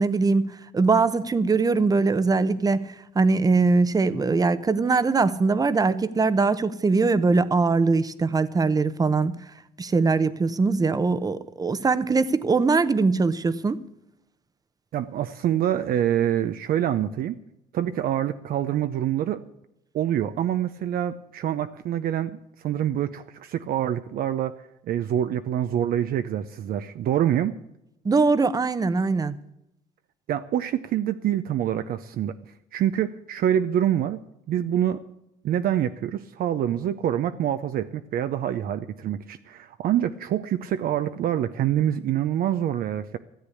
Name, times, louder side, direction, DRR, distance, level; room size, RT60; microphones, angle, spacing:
voice 1, 0.0-9.3 9.8-13.8 28.0-29.4, right 4 dB, 20° right, 0.8 m, -22 dB
voice 2, 14.9-17.4 17.7-19.4 19.9-24.5 24.9-27.6 30.3-32.4 32.7-34.2 34.5-35.0 35.4-43.2, right 10 dB, 60° right, 0.7 m, -26 dB
14.0 x 8.2 x 8.3 m
cardioid pair, 110°, 17 cm